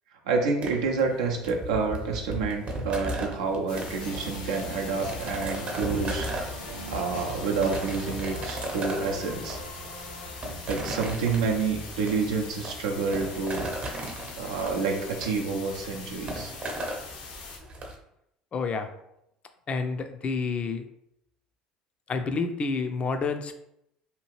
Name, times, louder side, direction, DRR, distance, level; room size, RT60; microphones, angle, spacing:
voice 1, 0.3-9.6 10.7-13.7 14.0-16.5, right 4 dB, 75° right, 1 dB, 0.5 m, -29 dB
sound 1, 0.6-17.9, right 1 dB, 40° right, 0.7 m, -37 dB
sound 2, 3.7-17.6, left 4 dB, 70° left, 0.6 m, -42 dB
sound 3, 4.0-11.0, equal, 85° left, 1.0 m, -42 dB
voice 2, 18.5-18.9 19.7-20.9 22.1-23.5, left 4 dB, 35° left, 8 dB, 0.4 m, -29 dB
2.8 x 2.4 x 3.1 m, 0.79 s
hypercardioid pair, 65°, 3 cm